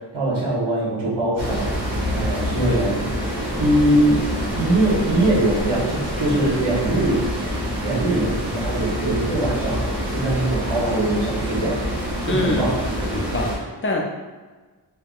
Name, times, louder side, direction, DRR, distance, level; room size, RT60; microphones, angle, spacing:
voice 1, 0.0-1.7 2.1-3.1 3.6-4.3 4.6-7.3 7.8-11.9 12.2-12.8, right 1 dB, 85° right, -7 dB, 1.0 m, -22 dB
sound 1, 1.4-13.6, equal, 5° right, 1.0 m, -26 dB
voice 2, 12.3-12.8 13.1-14.1, left 2 dB, 30° left, 0 dB, 0.4 m, -25 dB
3.5 x 2.1 x 2.3 m, 1.3 s
wide cardioid pair, 105°, 44 cm